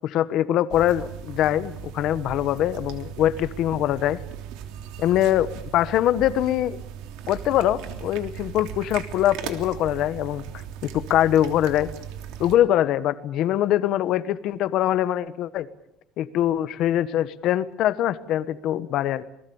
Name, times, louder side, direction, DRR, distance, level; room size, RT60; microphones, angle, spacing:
voice 1, 0.0-4.2 5.0-6.8 7.3-10.5 10.8-11.9 12.4-15.7 16.2-19.2, left 12 dB, 55° left, 14 dB, 1.3 m, -23 dB
sound 1, 0.7-12.6, right 9 dB, 80° right, 3.2 m, -38 dB
28.0 x 20.0 x 7.2 m, 0.77 s
cardioid pair, 165°, 0 cm